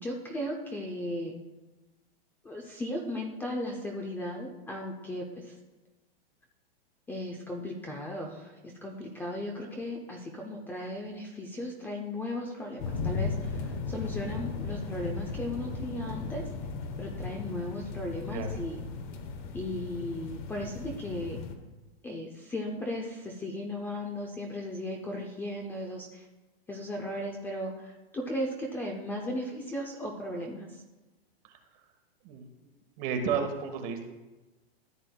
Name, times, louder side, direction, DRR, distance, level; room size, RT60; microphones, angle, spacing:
voice 1, 0.0-1.3 2.4-5.5 7.1-16.4 17.0-18.8 19.5-21.4 22.0-26.2 26.7-30.8, left 1 dB, 5° left, 0 dB, 0.5 m, -36 dB
sound 1, 12.8-21.6, left 4 dB, 50° left, 1.1 m, -36 dB
voice 2, 32.2-32.7 33.0-34.0, right 6 dB, 40° right, 6 dB, 1.3 m, -32 dB
14.0 x 7.6 x 2.2 m, 1.1 s
hypercardioid pair, 145°, 30 cm